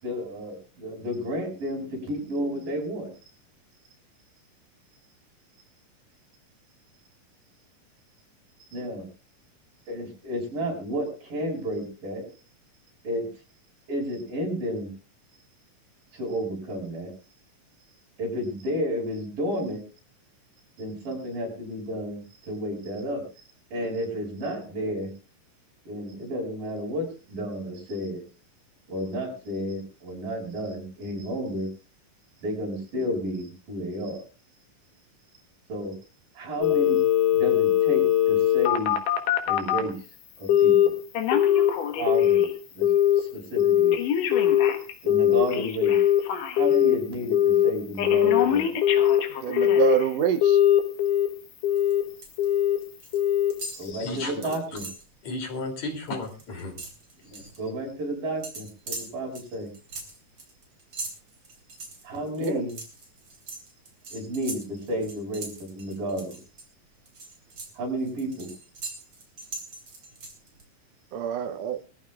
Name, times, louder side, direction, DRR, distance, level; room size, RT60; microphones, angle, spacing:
voice 1, 0.0-3.1 8.7-9.1 9.9-12.3 13.0-13.3 13.9-14.9 16.1-17.1 18.2-19.8 20.8-23.2 23.7-25.1 25.9-28.2 28.9-31.7 32.4-34.2 35.7-35.9 36.4-37.0 37.3-38.9 39.5-40.0 40.4-40.9 42.0-42.5 42.8-42.9 43.2-44.0 45.0-46.0 46.5-48.7 53.8-54.8 57.3-59.7 62.0-62.8 64.1-66.4 67.8-68.5, equal, 85° right, 7.4 m, -31 dB
Telephone, 36.6-39.9 40.5-40.9 41.1-42.5 42.8-43.2 43.6-47.0 47.3-47.7 48.0-50.0 50.4-51.3 51.6-52.0 52.4-52.8 53.1-53.5 53.9-54.0, left 11 dB, 75° left, 2.8 m, -21 dB
voice 2, 49.4-50.6 62.4-62.6 71.1-71.8, right 9 dB, 70° right, 1.7 m, -26 dB
sound 1, 51.8-52.4 52.7-53.2 53.5-55.1 55.5-55.7 56.0-57.6 58.4-66.6 67.1-70.6, right 3 dB, 35° right, 3.8 m, -40 dB
voice 3, 53.7-54.5 55.2-56.8, left 2 dB, 55° left, 4.1 m, -34 dB
22.0 x 14.5 x 2.4 m
omnidirectional pair, 3.9 m